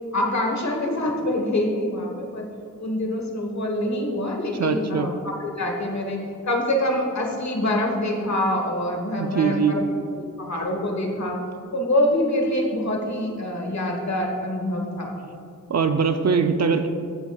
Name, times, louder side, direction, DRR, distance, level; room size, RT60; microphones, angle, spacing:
voice 1, 0.1-2.5 2.8-6.2 6.5-9.8 10.4-11.4 11.7-15.2, left 1 dB, 55° left, 1 dB, 1.3 m, -25 dB
voice 2, 4.6-5.1 9.2-9.8 15.7-16.9, right 5 dB, 55° right, 8 dB, 0.5 m, -21 dB
15.0 x 6.0 x 2.3 m, 2.3 s
wide cardioid pair, 110°, 33 cm